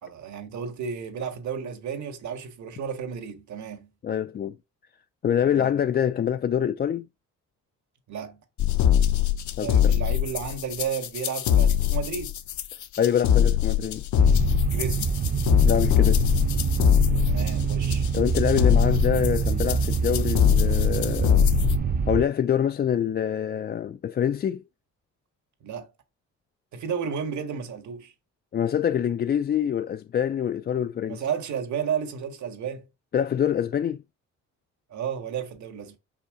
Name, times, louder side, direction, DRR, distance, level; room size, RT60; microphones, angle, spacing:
voice 1, 0.0-3.9 5.4-5.8 8.1-8.4 9.6-12.3 14.7-15.1 17.3-18.1 25.6-25.9 26.7-28.1 31.1-32.9 34.9-36.0, right 7 dB, 70° right, 1.8 m, -32 dB
voice 2, 4.0-4.5 5.2-7.1 9.6-9.9 13.0-14.0 15.6-16.3 18.1-21.5 22.1-24.6 28.5-31.2 33.1-34.0, left 9 dB, 35° left, 0.4 m, -25 dB
sound 1, 8.6-21.8, left 9 dB, 70° left, 0.8 m, -22 dB
sound 2, 14.2-22.2, right 5 dB, 30° right, 0.7 m, -25 dB
5.7 x 3.6 x 4.9 m
cardioid pair, 90°, 30 cm